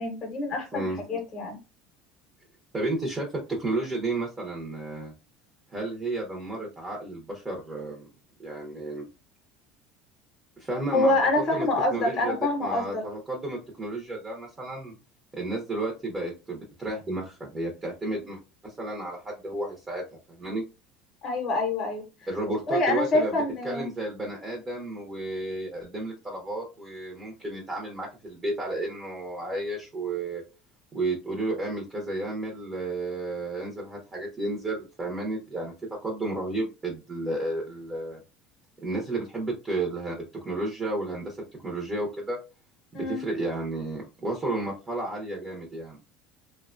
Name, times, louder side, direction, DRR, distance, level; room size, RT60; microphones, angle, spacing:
voice 1, 0.0-0.8 1.1-1.6 10.9-13.0 18.1-18.2 21.2-22.0 22.7-23.9 42.9-43.2, left 2 dB, 30° left, 0.8 m, -26 dB
voice 2, 2.7-5.1 5.7-8.0 8.4-9.0 10.6-11.2 11.5-14.9 15.3-20.6 22.3-23.3 23.6-30.4 30.9-38.2 38.8-41.4 41.6-42.4 42.9-46.0, right 2 dB, 15° right, 0.7 m, -32 dB
3.0 x 2.1 x 2.4 m
cardioid pair, 150°, 0 cm